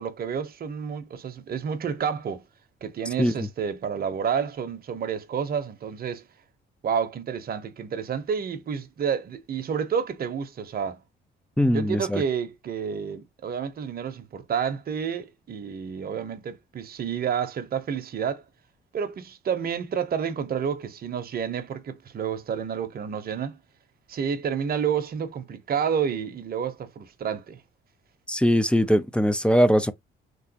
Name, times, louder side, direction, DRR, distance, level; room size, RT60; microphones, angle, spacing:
voice 1, 0.0-2.4 2.8-6.3 6.8-11.0 11.7-18.4 18.9-23.6 24.1-27.6, right 7 dB, 50° right, 0.9 m, -29 dB
voice 2, 11.6-12.2 28.3-29.9, equal, 5° left, 0.5 m, -21 dB
3.3 x 3.1 x 2.8 m
cardioid pair, 90°, 20 cm